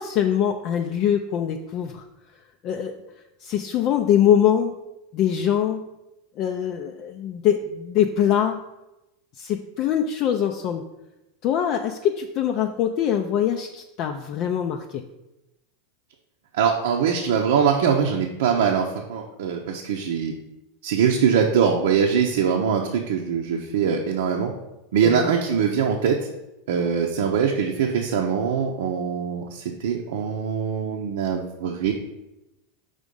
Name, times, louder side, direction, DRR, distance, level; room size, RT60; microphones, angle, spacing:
voice 1, 0.0-2.0 2.6-2.9 3.4-4.7 5.1-5.8 6.4-8.6 9.4-10.8 11.4-15.0 25.0-25.3, left 9 dB, 45° left, 4 dB, 0.4 m, -23 dB
voice 2, 16.5-20.3 20.8-24.5 24.9-26.3 26.7-31.9, right 7 dB, 75° right, 0 dB, 0.6 m, -22 dB
5.1 x 3.7 x 5.2 m, 0.95 s
supercardioid pair, 120°, 0 cm